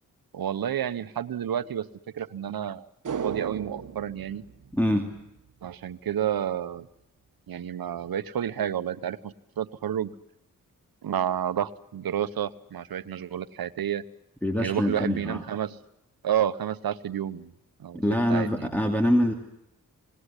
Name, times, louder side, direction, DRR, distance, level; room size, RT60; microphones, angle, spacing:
voice 1, 0.3-1.9 2.1-2.9 3.2-4.4 5.6-6.9 7.5-10.1 11.0-14.0 14.6-15.8 16.2-17.5 17.8-18.0 18.3-18.7, right 9 dB, 80° right, 14 dB, 1.1 m, -30 dB
sound 1, 3.0-5.5 5.8-5.9, right 7 dB, 60° right, 1.4 m, -36 dB
voice 2, 4.7-5.1 14.4-15.4 17.9-19.3, equal, 5° left, 4 dB, 2.8 m, -24 dB
26.5 x 19.5 x 10.0 m, 0.83 s
cardioid pair, 65°, 35 cm